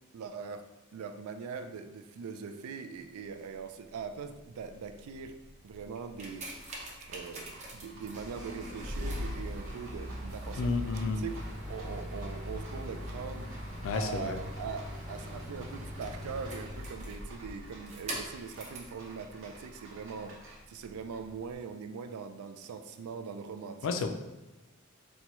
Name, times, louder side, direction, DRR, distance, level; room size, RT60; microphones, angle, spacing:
voice 1, 0.1-0.7 0.9-5.3 5.6-6.5 7.1-11.4 11.7-13.5 13.9-20.4 20.7-24.1, right 5 dB, 80° right, 8 dB, 0.3 m, -41 dB
Rattle, 3.1-21.6, right 1 dB, 65° right, 0.8 m, -53 dB
sound 1, 6.0-18.9 19.7-19.8, equal, 35° right, 0.6 m, -40 dB
voice 2, 10.6-11.2 13.8-14.4 23.8-24.1, left 4 dB, 65° left, 6 dB, 0.4 m, -31 dB
4.2 x 2.2 x 2.9 m, 1.1 s
head